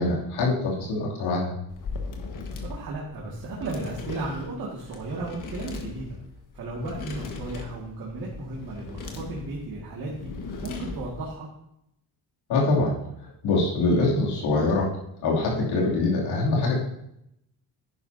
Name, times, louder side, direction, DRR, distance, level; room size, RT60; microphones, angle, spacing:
voice 1, 0.0-1.5 12.5-13.0 13.4-14.9 15.2-16.8, left 2 dB, 90° left, -3 dB, 2.9 m, -24 dB
sound 1, 1.7-11.3, left 4 dB, 55° left, 1.6 m, -38 dB
voice 2, 2.5-6.1 6.5-10.3 10.6-11.5, right 2 dB, 65° right, -4 dB, 2.1 m, -35 dB
11.0 x 9.9 x 2.8 m, 0.78 s
cardioid pair, 120°, 38 cm